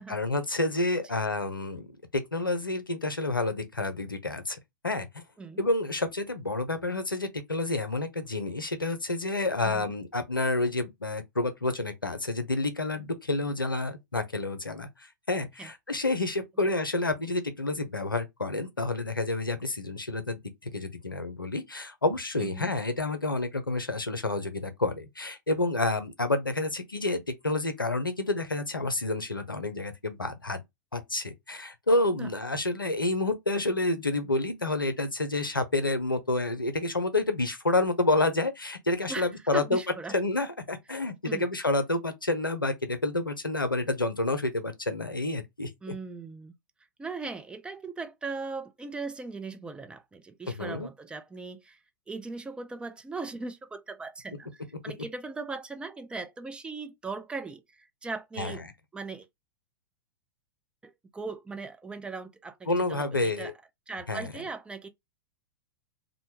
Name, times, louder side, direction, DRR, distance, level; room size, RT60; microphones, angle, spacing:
voice 1, 0.0-4.6 4.8-5.1 5.6-14.9 15.3-20.4 20.7-30.6 30.9-39.8 40.1-45.7 50.6-50.9 58.4-58.5 62.7-63.5 64.1-64.3, left 2 dB, 90° left, 0.6 m, -29 dB
voice 2, 22.4-22.7 32.2-32.3 39.1-40.1 40.9-41.5 45.8-46.5 47.0-51.8 52.1-58.6 58.9-59.3 60.8-63.5 63.9-64.9, right 4 dB, 10° right, 0.3 m, -39 dB
2.5 x 2.1 x 2.9 m
figure-of-eight pair, 100°, 11 cm